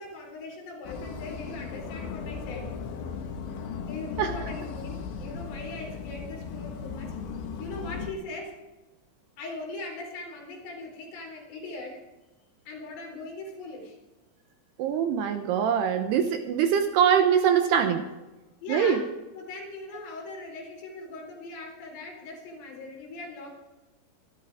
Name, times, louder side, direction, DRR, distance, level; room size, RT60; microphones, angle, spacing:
voice 1, 0.0-2.7 3.9-7.2 7.6-8.6 9.4-12.0 12.7-14.0 18.6-19.0 19.3-23.5, left 2 dB, 90° left, -1 dB, 6.9 m, -40 dB
sound 1, 0.8-8.1, left 5 dB, 70° left, 3.6 m, -37 dB
voice 2, 14.8-18.1 18.7-19.0, right 8 dB, 75° right, 6 dB, 2.6 m, -23 dB
26.0 x 13.0 x 3.5 m, 1.1 s
omnidirectional pair, 5.6 m